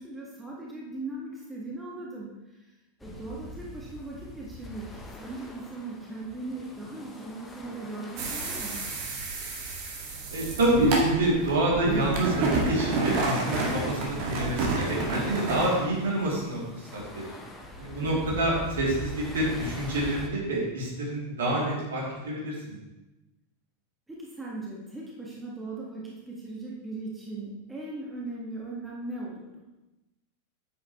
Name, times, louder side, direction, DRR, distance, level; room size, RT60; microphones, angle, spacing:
voice 1, 0.0-2.7 3.0-8.8 17.9-18.2 24.1-29.6, right 2 dB, 10° right, -4 dB, 1.7 m, -39 dB
sound 1, 3.0-20.3, left 1 dB, 10° left, 1.2 m, -43 dB
sound 2, 8.2-15.8, right 3 dB, 45° right, 1.9 m, -30 dB
voice 2, 10.3-17.2 17.8-22.7, right 1 dB, 65° right, -5 dB, 3.0 m, -27 dB
9.3 x 7.6 x 3.1 m, 1.0 s
figure-of-eight pair, 90°, 0 cm